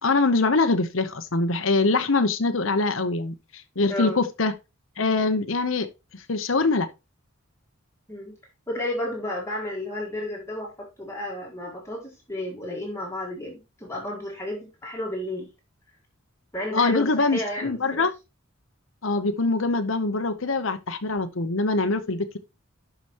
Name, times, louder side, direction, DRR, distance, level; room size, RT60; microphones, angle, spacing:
voice 1, 0.0-4.5 5.0-5.9 6.1-6.9 16.7-18.1 19.0-22.4, left 3 dB, 70° left, 1.0 m, -23 dB
voice 2, 3.9-4.2 8.1-8.3 8.7-15.5 16.5-18.1, left 1 dB, 15° left, 1.9 m, -32 dB
12.0 x 5.0 x 3.0 m
head